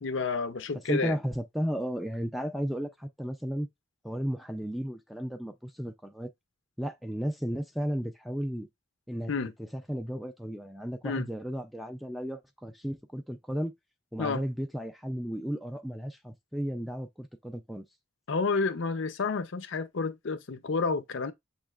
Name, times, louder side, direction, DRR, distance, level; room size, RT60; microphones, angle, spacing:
voice 1, 0.0-1.2 9.3-9.5 11.0-11.3 14.2-14.4 18.3-21.3, left 4 dB, 65° left, 0.5 m, -30 dB
voice 2, 0.9-3.7 4.0-6.3 6.8-8.7 9.1-9.3 9.6-13.7 14.1-17.8, equal, ahead, 0.3 m, -34 dB
7.0 x 3.1 x 2.4 m
head